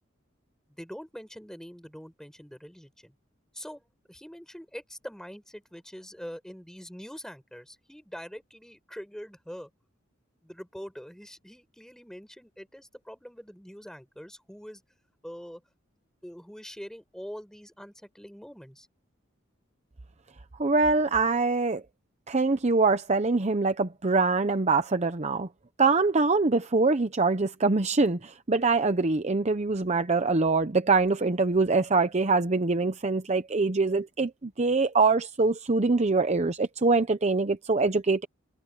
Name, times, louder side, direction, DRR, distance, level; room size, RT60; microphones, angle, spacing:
voice 1, 0.7-3.1 3.5-3.8 4.1-9.7 10.4-14.8 15.2-15.6 16.2-18.9, equal, 5° left, 5.1 m, -44 dB
voice 2, 20.6-21.8 22.3-25.5 25.8-38.3, right 3 dB, 35° right, 0.8 m, -24 dB
head